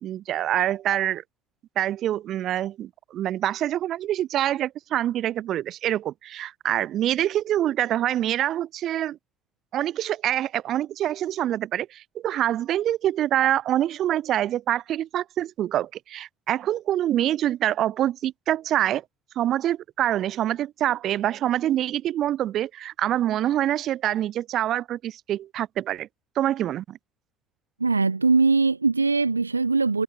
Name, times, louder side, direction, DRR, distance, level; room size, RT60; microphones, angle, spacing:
voice 1, 0.0-1.2 1.7-9.2 9.7-19.0 19.3-26.1 26.3-27.0, right 12 dB, 55° right, 1.7 m, -25 dB
voice 2, 27.8-30.0, right 4 dB, 85° right, 2.7 m, -21 dB
figure-of-eight pair, 45°, 0 cm